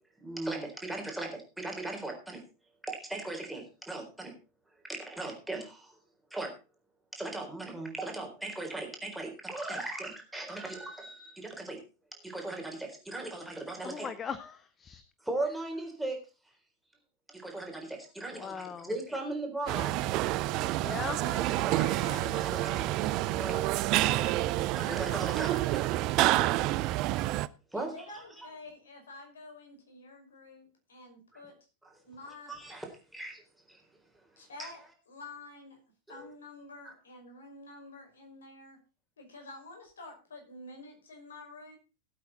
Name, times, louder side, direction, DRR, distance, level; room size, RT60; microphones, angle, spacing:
voice 1, 0.2-2.4 2.8-4.3 4.9-5.9 6.3-6.5 7.1-11.8 12.2-14.1 15.2-16.2 17.3-20.0 21.7-23.6 24.8-25.9 27.7-27.9 28.4-28.5 32.5-33.4 33.7-33.8 34.6-34.7 36.1-36.3, right 2 dB, 5° right, 1 dB, 4.1 m, -38 dB
voice 2, 13.8-15.0 18.3-18.9 20.7-21.2 21.5-22.6, left 7 dB, 20° left, 13 dB, 0.9 m, -40 dB
sound 1, 19.7-27.5, right 16 dB, 40° right, 0.6 m, -28 dB
voice 3, 21.0-22.3 24.1-26.0 27.7-31.6 32.0-32.5 34.4-35.8 36.1-38.8 39.2-41.8, left 2 dB, 65° left, 3 dB, 5.5 m, -49 dB
18.0 x 8.6 x 4.1 m, 0.32 s
figure-of-eight pair, 90°, 0 cm